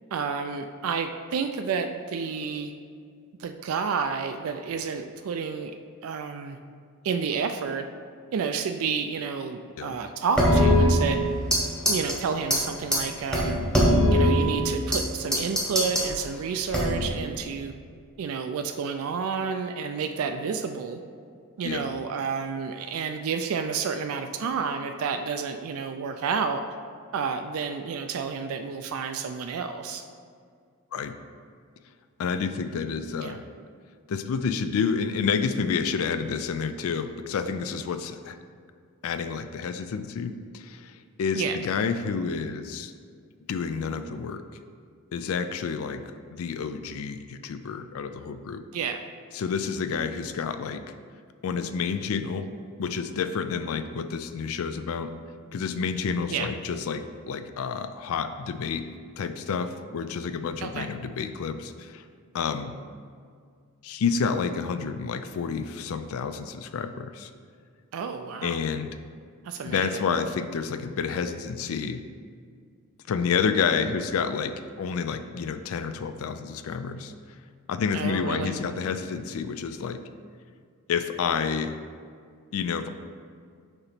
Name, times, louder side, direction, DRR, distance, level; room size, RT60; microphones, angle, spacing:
voice 1, 0.1-2.7 3.4-5.8 6.0-6.6 7.0-7.9 8.3-11.2 11.9-13.6 14.1-17.7 18.2-21.0 21.6-26.6 27.1-30.0 33.2-33.4 41.4-41.6 48.7-49.1 56.3-56.5 60.6-60.9 67.9-68.6 69.4-70.0 77.9-78.5, right 6 dB, 75° right, 6 dB, 0.3 m, -30 dB
sound 1, 10.4-11.6 11.9-12.1 12.5-12.6 12.9-13.0 13.3-15.0 15.3-16.1 16.7-17.1, equal, 5° left, 1.0 m, -21 dB
voice 2, 32.2-33.4 34.1-38.4 39.0-42.9 43.5-44.4 45.1-46.0 46.3-48.6 49.3-50.9 51.4-52.5 52.8-55.1 55.5-58.8 59.2-62.0 62.3-62.7 63.8-67.3 68.4-69.0 69.6-72.0 73.1-77.4 77.7-80.0 80.9-81.8 82.5-82.9, left 6 dB, 75° left, 9 dB, 0.3 m, -29 dB
6.6 x 2.9 x 5.8 m, 2.1 s
head